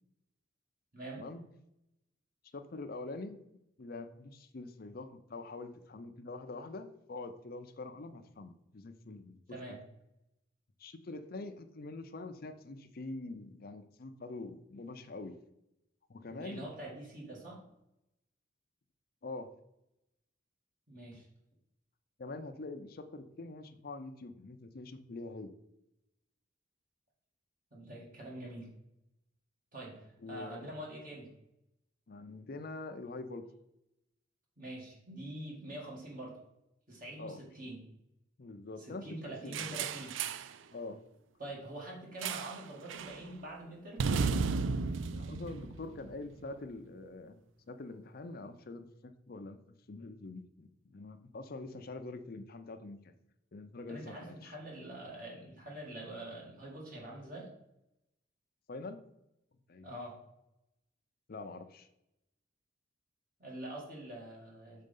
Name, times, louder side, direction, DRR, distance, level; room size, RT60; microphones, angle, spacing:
voice 1, 2.5-3.4 3.8-9.8 10.8-15.4 16.1-16.7 19.2-19.5 22.2-25.5 30.2-30.7 32.1-33.4 37.2-37.4 38.4-39.8 40.7-41.0 45.1-47.4 47.7-49.6 49.9-53.1 53.5-54.5 58.7-59.0 59.7-59.9 61.3-61.9, left 2 dB, 50° left, 7 dB, 0.5 m, -45 dB
voice 2, 9.5-9.8 16.3-17.6 20.9-21.3 27.7-28.8 29.7-31.3 34.6-36.4 36.9-37.9 38.8-40.1 41.4-44.1 53.9-57.5 59.8-60.2 63.4-64.8, right 1 dB, 45° right, -3 dB, 2.1 m, -45 dB
sound 1, 39.5-40.5 42.2-42.6 42.9-43.2 44.0-46.3, right 4 dB, 80° right, 0.4 m, -34 dB
6.6 x 4.1 x 5.3 m, 0.86 s
head